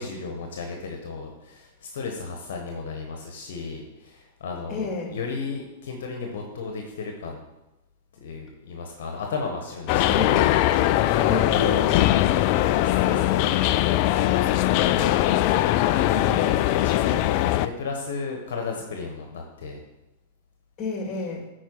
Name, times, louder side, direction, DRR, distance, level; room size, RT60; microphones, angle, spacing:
voice 1, 0.0-7.4 8.1-10.2 10.7-12.1 12.5-15.2 16.4-19.8, left 4 dB, 70° left, 2 dB, 1.2 m, -34 dB
voice 2, 4.7-5.2 10.1-10.5 11.3-11.8 16.1-16.4 20.8-21.5, left 3 dB, 30° left, 2 dB, 2.1 m, -30 dB
sound 1, 9.9-17.7, left 14 dB, 50° left, 0.3 m, -21 dB
9.2 x 4.6 x 4.6 m, 0.99 s
hypercardioid pair, 105°, 0 cm